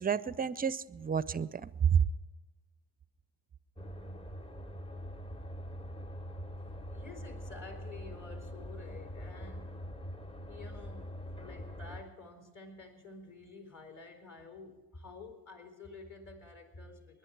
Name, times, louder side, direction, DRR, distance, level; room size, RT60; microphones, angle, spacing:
voice 1, 0.0-2.0, right 7 dB, 20° right, 0.5 m, -30 dB
sound 1, 3.8-12.0, equal, 15° left, 0.8 m, -44 dB
voice 2, 6.9-9.7 10.5-17.2, left 3 dB, 40° left, 4.2 m, -50 dB
20.5 x 10.5 x 4.6 m
supercardioid pair, 80°, 44 cm